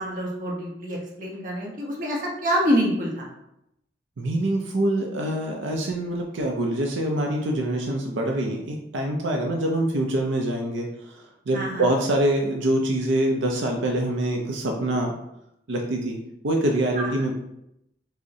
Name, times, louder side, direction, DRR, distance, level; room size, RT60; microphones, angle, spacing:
voice 1, 0.0-3.2 11.5-11.8 17.0-17.1, equal, 45° right, -3 dB, 0.9 m, -26 dB
voice 2, 4.2-15.1 15.7-16.2 16.4-17.3, right 1 dB, 85° right, 1 dB, 0.5 m, -25 dB
6.1 x 2.1 x 2.7 m, 0.81 s
head